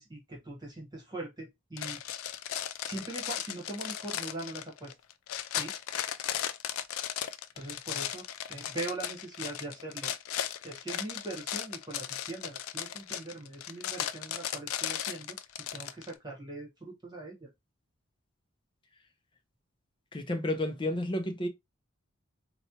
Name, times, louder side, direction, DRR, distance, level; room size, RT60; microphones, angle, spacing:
voice 1, 0.0-2.3 2.8-4.9 5.5-5.7 7.6-10.1 10.6-15.4 15.7-17.5, right 2 dB, 20° right, 1.2 m, -41 dB
sound 1, 1.8-16.1, left 10 dB, 80° left, 0.4 m, -36 dB
voice 2, 20.1-21.5, left 1 dB, 25° left, 0.5 m, -31 dB
4.2 x 2.2 x 2.8 m
head